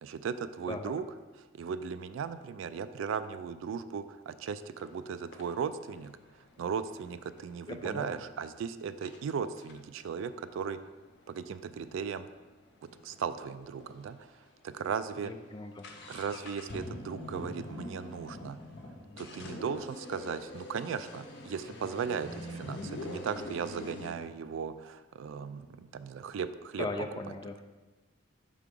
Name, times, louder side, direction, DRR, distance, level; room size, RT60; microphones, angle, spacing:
voice 1, 0.0-1.0 1.5-6.1 6.6-10.8 11.3-12.3 13.0-14.3 14.6-15.3 16.1-18.6 19.2-26.9, right 6 dB, 70° right, 12 dB, 0.3 m, -37 dB
sound 1, 4.8-4.9 5.3-8.0 8.6-8.7 9.0-9.2 9.6-13.2 13.5-13.6 13.8-13.9 14.5-14.7 15.0-24.1, left 2 dB, 55° left, 0.7 m, -45 dB
voice 2, 7.7-8.1 15.2-15.8 26.8-27.6, left 2 dB, 20° left, 6 dB, 0.3 m, -38 dB
5.7 x 3.6 x 5.2 m, 1.2 s
head